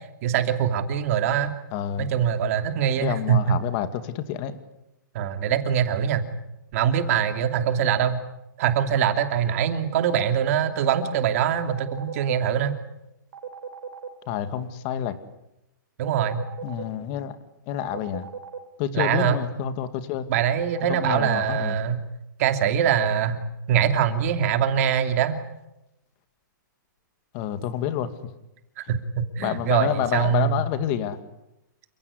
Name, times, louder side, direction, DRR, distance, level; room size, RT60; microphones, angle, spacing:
voice 1, 0.2-1.5 2.0-3.6 5.1-6.3 6.7-8.2 8.6-12.8 16.0-16.4 18.9-19.4 20.3-22.0 22.4-23.4 23.7-25.4 28.8-30.7, right 8 dB, 45° right, 7 dB, 2.8 m, -23 dB
voice 2, 1.7-2.1 3.0-4.6 14.3-15.1 16.6-17.4 17.7-18.3 18.8-20.3 20.9-21.8 27.3-28.1 29.4-31.2, left 10 dB, 30° left, 11 dB, 2.2 m, -28 dB
sound 1, 11.6-12.3 13.3-14.1 16.1-16.8 17.8-18.6 20.6-21.3, right 6 dB, 75° right, 4.4 m, -37 dB
29.0 x 17.0 x 9.9 m, 0.90 s
hypercardioid pair, 155°, 11 cm